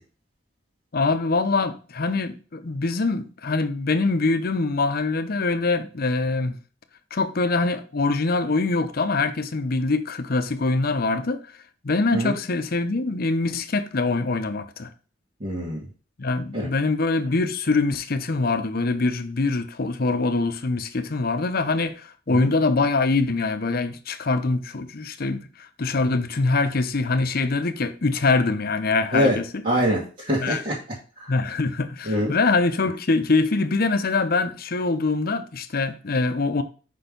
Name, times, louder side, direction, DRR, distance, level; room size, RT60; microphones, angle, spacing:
voice 1, 0.9-6.5 7.1-11.4 11.8-14.9 16.2-29.4 30.4-30.6 31.3-36.6, left 3 dB, 55° left, 0.7 m, -24 dB
voice 2, 15.4-15.8 16.5-16.7 22.3-22.5 29.1-29.4 29.6-30.8 31.2-31.3 32.1-32.4, equal, 45° right, 1.5 m, -24 dB
5.3 x 4.4 x 5.1 m
head